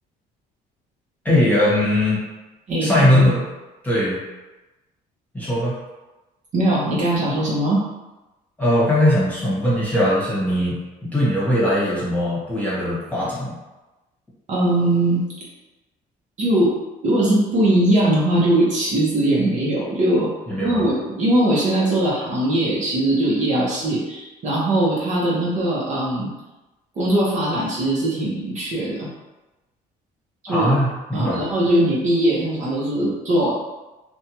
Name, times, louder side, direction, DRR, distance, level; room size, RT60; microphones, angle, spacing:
voice 1, 1.2-2.2 2.8-3.4 3.8-4.2 5.3-5.7 8.6-13.5 20.5-20.8 30.5-31.4, left 1 dB, 10° left, -8 dB, 1.2 m, -20 dB
voice 2, 2.7-3.2 6.5-7.8 14.5-15.2 16.4-16.7 17.0-20.3 20.6-26.3 27.0-29.1 30.5-30.8 31.1-33.5, right 1 dB, 45° right, -6 dB, 0.8 m, -20 dB
2.6 x 2.2 x 2.9 m, 1.1 s
cardioid pair, 110°, 17 cm